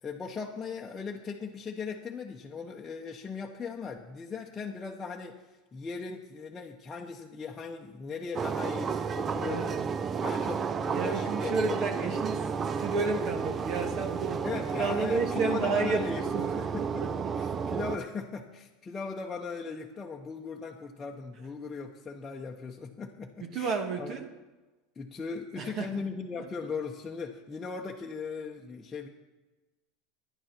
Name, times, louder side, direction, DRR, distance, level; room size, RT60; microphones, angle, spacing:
voice 1, 0.0-9.8 10.2-12.2 14.4-24.1 24.9-29.1, left 5 dB, 20° left, -1 dB, 1.0 m, -38 dB
sound 1, 8.3-18.0, right 6 dB, 30° right, 0.5 m, -32 dB
voice 2, 9.4-9.9 10.9-14.4 14.8-16.6 17.0-17.1 23.5-24.3 25.6-25.9, right 4 dB, 45° right, 5 dB, 1.5 m, -31 dB
11.5 x 10.0 x 5.9 m, 1.2 s
supercardioid pair, 120°, 0 cm